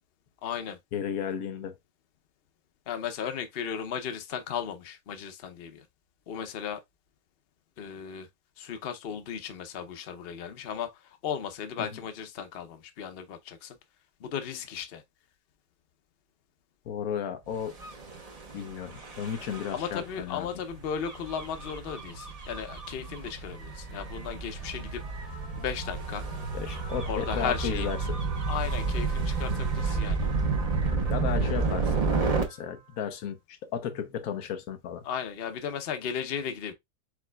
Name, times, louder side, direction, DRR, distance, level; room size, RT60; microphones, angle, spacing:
voice 1, 0.4-0.8 2.9-5.8 6.3-6.8 7.8-8.3 8.6-13.8 14.2-15.0 19.7-25.0 25.6-26.2 27.1-27.9 28.5-30.3 35.0-36.7, left 8 dB, 50° left, 0.9 m, -35 dB
voice 2, 0.9-1.8 11.8-12.0 16.9-17.7 18.5-20.5 26.5-28.2 31.1-35.0, left 8 dB, 90° left, 1.2 m, -34 dB
Gull seagull / Waves surf / Siren, 17.7-32.4, right 4 dB, 30° right, 0.9 m, -31 dB
4.8 x 4.2 x 2.2 m
omnidirectional pair, 1.5 m